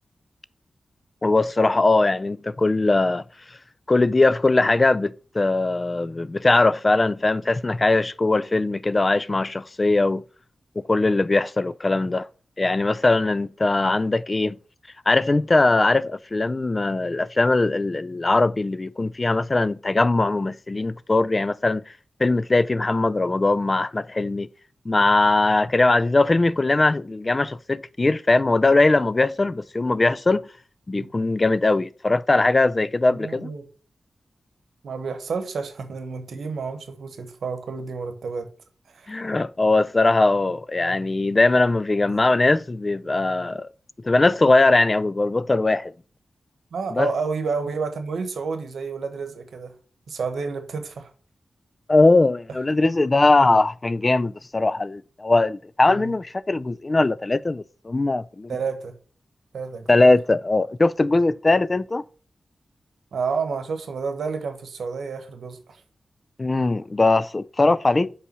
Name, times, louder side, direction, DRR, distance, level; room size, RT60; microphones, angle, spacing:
voice 1, 1.2-3.2 3.9-10.2 10.8-12.3 12.6-14.6 15.1-21.8 22.2-24.5 24.9-30.5 30.9-33.5 39.1-43.7 44.0-45.9 46.9-47.1 51.9-58.5 59.9-62.0 66.4-68.1, left 2 dB, 35° left, 0.3 m, -20 dB
voice 2, 33.1-33.6 34.8-38.5 38.9-39.2 42.1-42.2 46.7-49.7 50.1-51.1 55.9-56.1 58.5-58.9 59.5-60.1 63.1-65.8, right 5 dB, 85° right, 1.0 m, -30 dB
5.5 x 4.9 x 5.4 m
cardioid pair, 60°, 0 cm